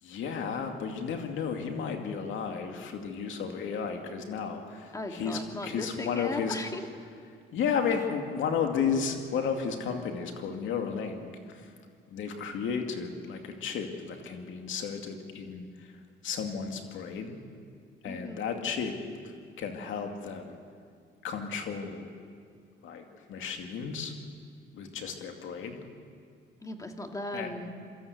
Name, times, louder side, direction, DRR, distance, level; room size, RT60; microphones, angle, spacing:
voice 1, 0.0-6.6 7.5-11.7 12.1-17.4 18.0-19.0 19.2-20.6 21.2-22.1 22.8-24.1 24.7-25.8 27.3-27.5, left 6 dB, 80° left, 4 dB, 2.4 m, -33 dB
voice 2, 4.9-7.0 18.0-18.7 26.6-27.7, left 1 dB, 15° left, 4 dB, 2.1 m, -37 dB
25.5 x 13.5 x 8.2 m, 2.3 s
cardioid pair, 90°, 20 cm